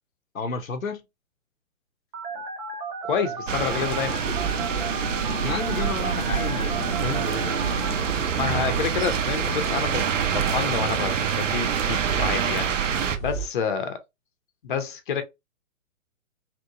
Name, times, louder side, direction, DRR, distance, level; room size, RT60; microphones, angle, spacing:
voice 1, 0.3-1.0 5.4-8.2 8.5-8.8, left 4 dB, 90° left, 0.6 m, -32 dB
Telephone, 2.1-7.9, right 4 dB, 35° right, 0.8 m, -35 dB
voice 2, 3.0-4.3 8.1-14.0 14.6-15.2, left 7 dB, 40° left, 0.5 m, -29 dB
sound 1, 3.5-13.2, right 8 dB, 70° right, 0.5 m, -26 dB
sound 2, 4.2-13.4, right 2 dB, 5° right, 0.6 m, -34 dB
2.8 x 2.0 x 2.3 m
figure-of-eight pair, 120°, 39 cm